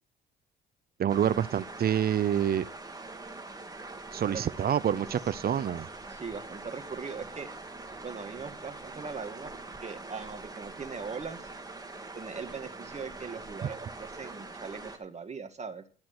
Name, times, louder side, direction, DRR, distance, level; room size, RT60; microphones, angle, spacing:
voice 1, 1.0-2.7 4.1-5.9, right 9 dB, 50° right, 18 dB, 0.7 m, -27 dB
sound 1, 1.1-15.0, right 3 dB, 20° right, 2.0 m, -44 dB
voice 2, 6.1-7.5 8.0-9.5 9.8-11.5 12.1-15.8, right 5 dB, 35° right, 8 dB, 1.8 m, -40 dB
12.5 x 6.0 x 8.0 m, 0.40 s
cardioid pair, 90°, 20 cm